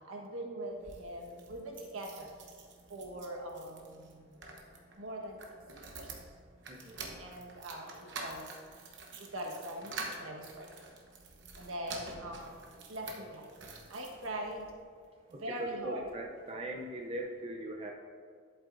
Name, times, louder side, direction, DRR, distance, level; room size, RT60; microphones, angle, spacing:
voice 1, 0.1-2.3 2.9-4.2 5.0-5.4 7.1-8.4 9.3-10.7 11.6-12.5 12.9-13.5 13.9-14.7 15.4-16.0, right 1 dB, 80° right, 0 dB, 1.4 m, -41 dB
sound 1, 0.7-14.7 15.3-16.2 16.5-16.6 16.8-16.9, right 3 dB, 60° right, 1.0 m, -48 dB
voice 2, 6.7-7.0 15.3-17.9, right 1 dB, 30° right, 0 dB, 0.6 m, -40 dB
11.0 x 8.0 x 2.6 m, 2.1 s
head